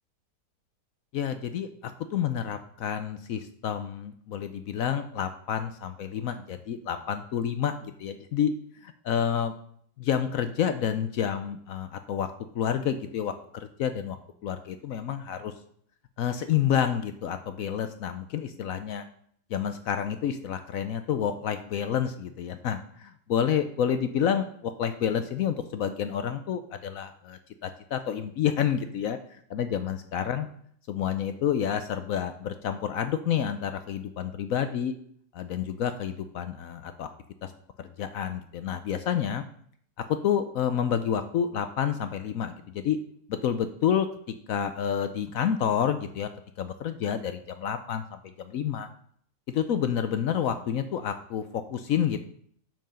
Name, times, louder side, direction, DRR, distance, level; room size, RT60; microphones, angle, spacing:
voice 1, 1.1-9.5 10.0-14.2 14.4-15.5 16.2-19.0 19.5-30.5 30.9-34.9 35.3-37.1 37.4-37.5 37.8-39.4 40.0-43.0 43.3-46.3 46.6-48.9 49.5-52.2, left 8 dB, 70° left, 9 dB, 0.9 m, -29 dB
6.9 x 6.1 x 5.6 m, 0.63 s
omnidirectional pair, 1.7 m